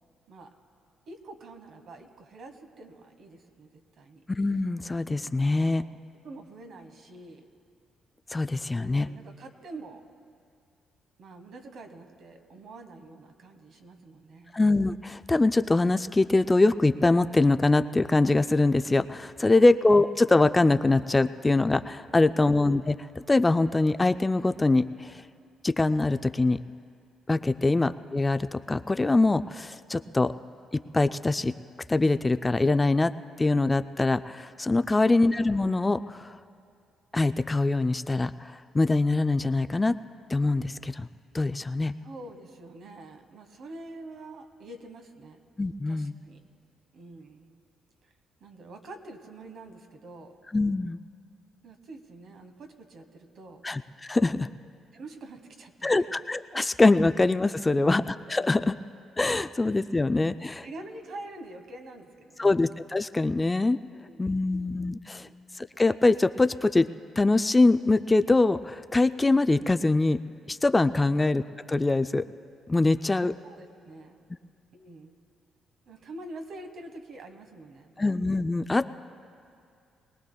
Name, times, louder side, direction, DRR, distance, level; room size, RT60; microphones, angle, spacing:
voice 1, 1.1-3.7 4.0-4.2 5.4-7.5 8.7-10.0 11.2-14.5 19.4-19.6 27.6-27.8 42.0-45.4 45.9-46.4 46.9-47.5 48.0-48.1 48.4-50.4 51.6-53.7 54.9-56.1 60.6-62.5 63.9-64.6 65.2-65.4 73.1-74.2 74.7-75.2 75.8-78.1, right 2 dB, 65° right, 6 dB, 1.4 m, -46 dB
voice 2, 4.3-5.8 8.3-9.1 14.5-23.0 23.3-25.2 25.6-26.6 27.3-30.3 30.7-31.5 31.9-33.1 33.4-36.4 37.1-40.0 40.3-41.1 41.3-41.9 45.6-46.2 50.5-51.0 53.6-54.5 55.8-58.0 58.3-58.8 59.2-60.7 62.4-63.8 64.2-65.3 65.6-66.9 67.2-70.2 70.5-71.4 71.7-72.3 72.7-73.3 78.0-78.9, left 2 dB, 20° left, 11 dB, 0.3 m, -23 dB
23.0 x 18.5 x 2.3 m, 2.4 s
cardioid pair, 90°, 0 cm